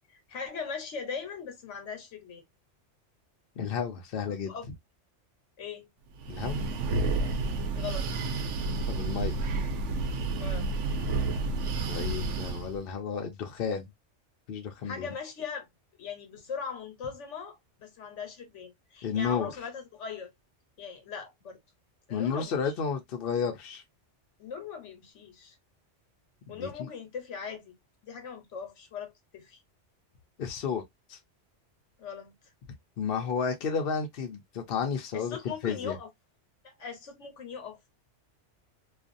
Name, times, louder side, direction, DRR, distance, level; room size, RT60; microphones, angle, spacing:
voice 1, 0.1-2.4 4.3-4.7 5.6-5.9 7.7-8.1 10.4-10.7 14.8-15.7 16.0-20.3 20.8-21.6 22.1-22.7 24.4-25.6 26.5-27.7 28.0-29.6 32.0-32.3 35.1-36.1 36.6-37.8, left 6 dB, 80° left, 1.2 m, -40 dB
voice 2, 3.6-4.6 6.3-6.6 8.9-9.4 11.9-13.8 14.5-15.1 19.0-19.5 22.1-23.8 26.5-26.9 30.4-30.8 31.1-31.2 33.0-35.4 35.6-36.0, left 6 dB, 60° left, 0.7 m, -32 dB
Breathing, 6.2-12.8, right 3 dB, 80° right, 0.9 m, -30 dB
2.5 x 2.2 x 2.5 m
omnidirectional pair, 1.2 m